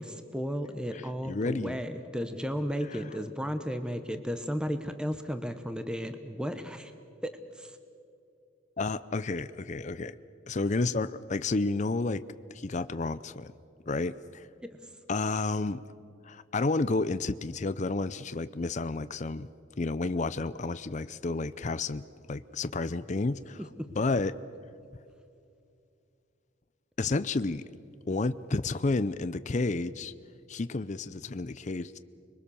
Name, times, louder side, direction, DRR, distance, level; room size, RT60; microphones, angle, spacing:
voice 1, 0.0-6.9 7.2-7.8 23.8-23.9, equal, 5° right, 8 dB, 0.9 m, -34 dB
voice 2, 0.9-1.8 2.9-3.0 8.8-10.2 10.5-12.2 12.5-13.5 13.9-14.5 15.1-15.8 16.2-19.5 19.8-24.4 27.0-27.6 28.1-30.1 30.5-32.0, left 3 dB, 35° left, 13 dB, 0.5 m, -31 dB
26.0 x 22.5 x 7.0 m, 2.5 s
head